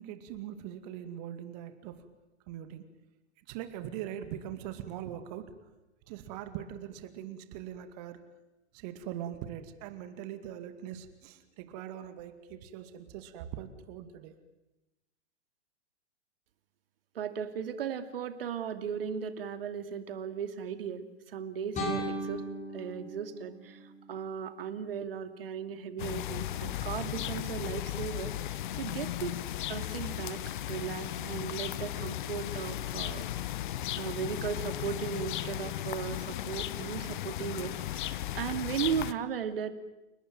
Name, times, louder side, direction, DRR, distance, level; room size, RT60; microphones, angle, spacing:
voice 1, 0.0-2.1 2.5-2.8 3.5-5.5 6.1-8.2 8.7-14.3, right 10 dB, 35° right, 10 dB, 2.3 m, -41 dB
voice 2, 17.1-22.4 22.7-29.4 29.7-30.4 30.7-33.3 34.0-39.7, right 7 dB, 55° right, 9 dB, 2.7 m, -36 dB
sound 1, 21.7-24.7, equal, 20° left, 6.6 m, -38 dB
sound 2, 26.0-39.1, left 13 dB, 45° left, 1.1 m, -36 dB
30.0 x 19.0 x 9.1 m, 0.99 s
figure-of-eight pair, 110°, 34 cm